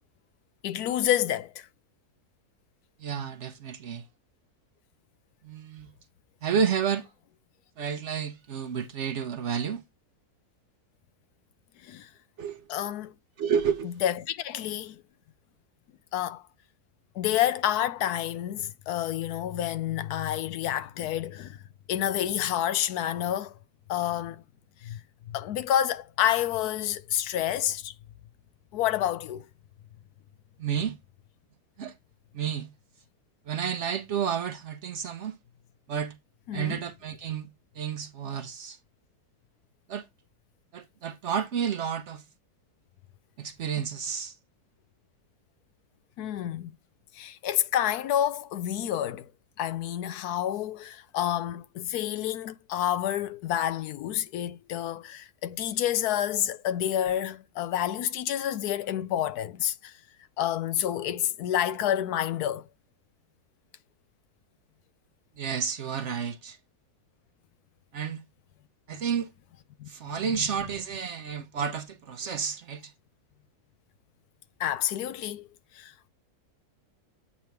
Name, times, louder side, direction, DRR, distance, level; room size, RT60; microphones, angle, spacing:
voice 1, 0.6-1.7 11.8-12.1 12.7-13.1 13.8-15.0 16.1-16.4 17.1-21.6 21.9-23.6 23.9-24.4 24.8-25.0 25.3-27.9 28.7-29.4 36.5-36.8 46.2-46.7 47.1-49.3 49.6-59.9 60.4-62.7 69.8-70.1 74.6-75.5 75.7-75.9, left 11 dB, 80° left, 1.2 m, -29 dB
voice 2, 3.0-4.0 5.4-5.9 6.4-7.1 7.8-9.8 12.4-12.6 13.4-13.9 30.6-31.0 31.8-31.9 32.3-32.7 33.5-35.4 35.9-36.1 36.5-37.5 37.8-38.8 39.9-40.0 40.7-42.2 43.4-44.3 65.4-66.6 67.9-68.2 68.9-69.3 69.9-72.9, right 7 dB, 55° right, 0.9 m, -30 dB
8.6 x 3.4 x 4.5 m
omnidirectional pair, 1.6 m